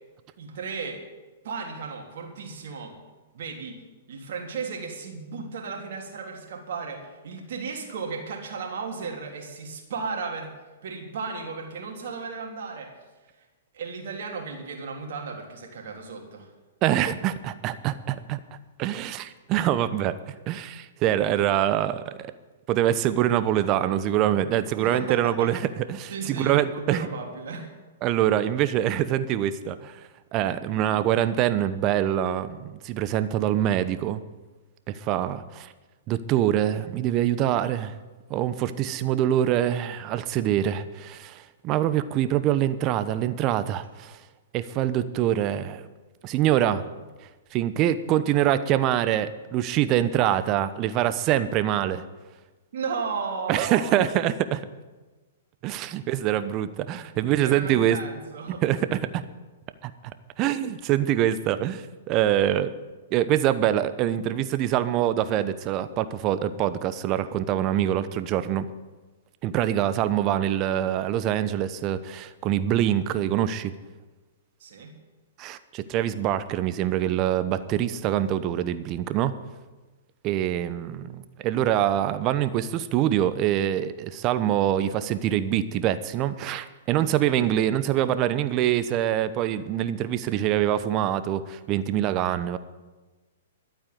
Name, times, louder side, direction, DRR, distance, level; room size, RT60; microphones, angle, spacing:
voice 1, 0.4-1.0 1.4-2.9 3.3-3.8 4.1-10.5 10.8-12.9 13.7-16.5 24.8-25.5 26.1-27.7 52.7-54.1 56.9-57.0 57.4-58.6 74.6-74.9, right 5 dB, 65° right, 2 dB, 3.3 m, -34 dB
voice 2, 16.8-18.4 18.8-20.2 20.5-22.3 22.7-27.1 28.0-30.0 30.3-34.2 34.9-35.7 36.1-38.0 38.3-44.2 44.5-45.8 46.2-46.9 47.5-52.0 53.5-54.7 55.6-58.0 58.6-59.2 59.8-62.7 63.1-68.7 69.4-73.7 75.4-79.4 80.2-92.6, right 11 dB, 35° right, 13 dB, 0.9 m, -25 dB
12.0 x 8.8 x 9.5 m, 1.2 s
hypercardioid pair, 125°, 0 cm